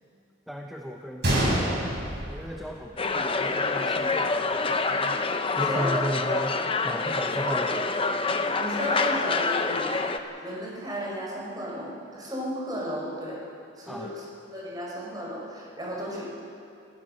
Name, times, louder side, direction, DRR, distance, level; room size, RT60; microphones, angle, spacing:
voice 1, 0.5-1.7 2.3-5.2 5.6-6.5 6.8-7.9 13.9-14.1, equal, ahead, 1 dB, 0.9 m, -35 dB
Gunshot gunfire, 1.2-3.2 3.5-3.6 4.3-4.5, right 1 dB, 55° right, 6.4 m, -27 dB
sound 1, 3.0-10.2, left 4 dB, 25° left, 0.8 m, -26 dB
voice 2, 5.5-6.5 8.6-13.4 13.8-14.2 14.5-16.3, equal, 20° right, -4 dB, 5.1 m, -34 dB
27.0 x 15.5 x 6.6 m, 2.5 s
head